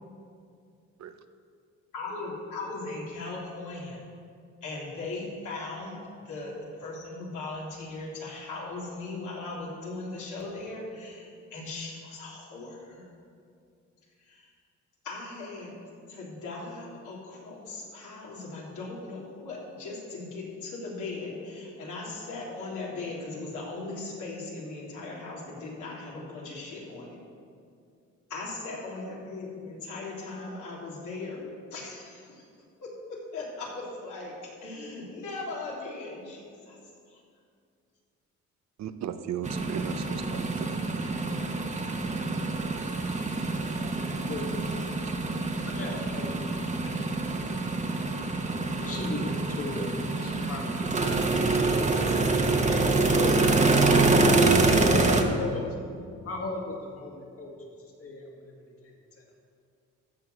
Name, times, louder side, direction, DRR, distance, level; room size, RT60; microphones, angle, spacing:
voice 1, 1.9-4.0 4.6-13.1 14.2-14.5 15.0-15.8 16.1-27.2 28.3-32.4 32.8-36.8 37.1-37.2, left 3 dB, 80° left, -4 dB, 3.3 m, -38 dB
voice 2, 38.8-40.8, right 8 dB, 65° right, 10 dB, 0.7 m, -36 dB
sound 1, 39.4-55.2, right 3 dB, 25° right, 1.1 m, -26 dB
voice 3, 43.6-43.9 44.3-44.5 45.6-46.5 46.8-47.7 48.8-51.6 52.7-55.6 56.2-57.6 57.8-58.5 58.8-59.2, left 2 dB, 50° left, 0 dB, 2.3 m, -38 dB
14.0 x 4.7 x 8.0 m, 2.3 s
cardioid pair, 90°, 30 cm